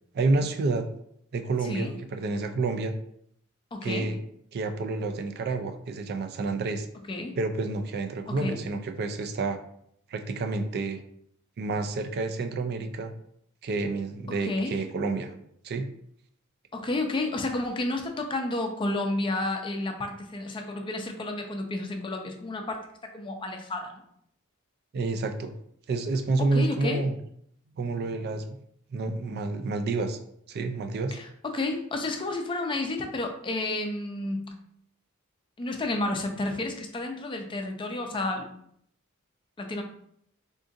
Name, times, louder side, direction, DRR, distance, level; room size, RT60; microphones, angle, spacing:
voice 1, 0.1-0.9 1.3-2.9 3.8-4.2 4.5-6.9 7.4-9.6 10.1-11.0 11.6-13.1 13.6-15.3 15.6-15.8 24.9-25.5 25.9-27.1 27.8-28.5 28.9-30.2 30.5-31.2, right 3 dB, 50° right, 7 dB, 0.3 m, -29 dB
voice 2, 1.6-1.9 3.7-4.1 7.0-7.4 8.3-8.6 14.3-14.8 16.7-24.0 26.4-27.0 31.1-34.6 35.6-38.5 39.6-39.8, left 2 dB, 25° left, 4 dB, 0.4 m, -31 dB
3.7 x 2.4 x 2.6 m, 0.69 s
head